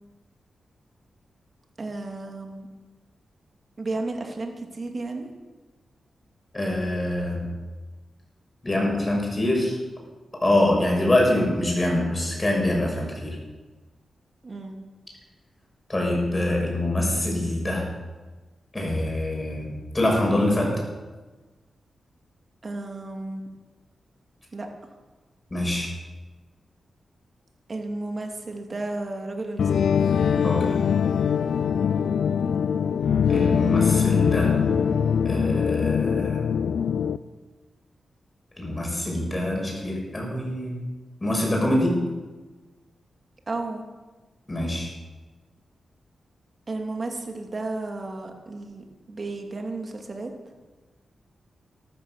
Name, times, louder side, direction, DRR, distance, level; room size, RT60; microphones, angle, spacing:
voice 1, 1.8-2.7 3.8-5.3 14.4-14.8 22.6-23.4 24.5-24.7 27.7-29.7 32.4-32.6 43.5-43.9 46.7-50.3, right 2 dB, 45° right, 3 dB, 2.8 m, -33 dB
voice 2, 6.5-7.4 8.6-9.8 10.4-13.4 15.9-17.8 18.7-20.7 25.5-25.9 30.4-30.6 33.3-34.5 35.2-36.5 38.6-40.8 41.2-42.0 44.5-44.9, left 1 dB, 25° left, -1 dB, 6.5 m, -24 dB
sound 1, 29.6-37.2, left 7 dB, 80° left, 0.5 m, -22 dB
13.5 x 13.0 x 6.6 m, 1.3 s
cardioid pair, 65°, 0 cm